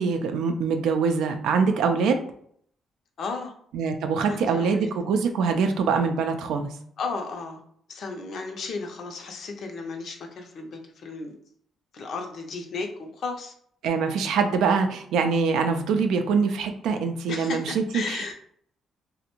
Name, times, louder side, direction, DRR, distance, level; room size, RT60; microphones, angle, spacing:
voice 1, 0.0-2.2 3.7-6.7 13.8-18.3, right 5 dB, 85° right, 6 dB, 0.4 m, -24 dB
voice 2, 3.2-3.5 4.3-4.9 7.0-7.6 7.9-11.3 11.9-13.5 17.3-18.3, left 4 dB, 65° left, 4 dB, 0.5 m, -34 dB
2.5 x 2.1 x 2.9 m, 0.64 s
cardioid pair, 90°, 0 cm